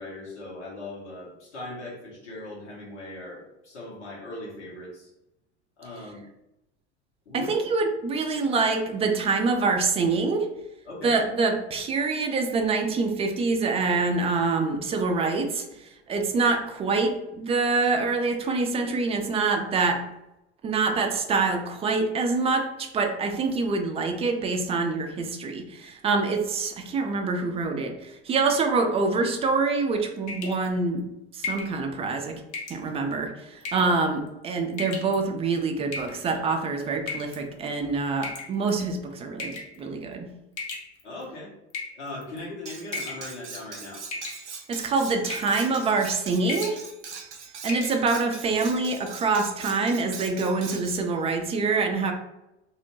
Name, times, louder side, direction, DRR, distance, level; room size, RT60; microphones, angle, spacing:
voice 1, 0.0-5.1 5.8-6.2 7.2-7.5 10.9-11.2 41.0-41.5 41.9-44.0, left 2 dB, 75° left, -4 dB, 1.2 m, -39 dB
voice 2, 7.3-10.5 11.0-20.0 20.6-31.1 31.3-32.4 32.7-40.3 44.7-46.8 47.6-52.1, right 4 dB, 20° right, 4 dB, 0.4 m, -25 dB
sound 1, 30.3-30.7 31.4-31.7 32.5-32.8 33.6-34.0 34.7-35.2 35.9-36.4 37.1-37.4 38.2-38.8 39.4-39.8 40.6-41.2 41.7-42.4 42.9-43.3 43.5-43.8 44.1-44.7 45.3-45.6 45.9-46.1 46.4-46.8 47.2-47.3 47.6-48.0, left 4 dB, 45° left, 0.8 m, -35 dB
Cutlery silverware, 42.7-51.0, right 5 dB, 85° right, 0.5 m, -41 dB
2.6 x 2.0 x 3.1 m, 0.89 s
figure-of-eight pair, 75°, 35 cm